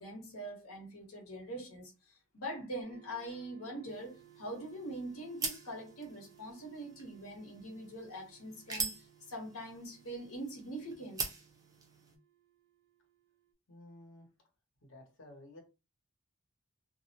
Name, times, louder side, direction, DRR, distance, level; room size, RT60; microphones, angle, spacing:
voice 1, 0.0-11.2, right 1 dB, 85° left, 1.0 m, -43 dB
sound 1, 2.8-13.5, right 13 dB, 70° right, 0.7 m, -63 dB
sound 2, 3.8-12.2, right 4 dB, 15° right, 0.4 m, -44 dB
voice 2, 13.7-14.3 14.8-15.6, left 1 dB, 60° left, 0.9 m, -53 dB
2.4 x 2.0 x 2.7 m
head